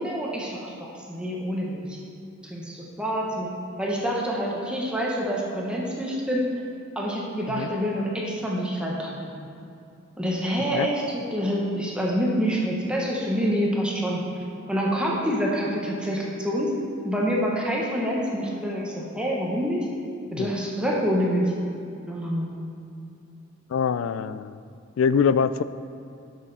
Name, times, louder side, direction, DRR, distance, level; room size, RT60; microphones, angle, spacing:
voice 1, 0.0-2.0 2.4-3.5 3.8-6.4 6.9-9.3 10.2-14.2 14.7-16.7 17.0-19.8 20.3-21.5 22.1-22.6, equal, 5° right, -3 dB, 1.1 m, -27 dB
voice 2, 23.7-24.6 25.0-25.6, left 6 dB, 75° left, 15 dB, 0.3 m, -23 dB
12.0 x 6.5 x 4.1 m, 2.6 s
head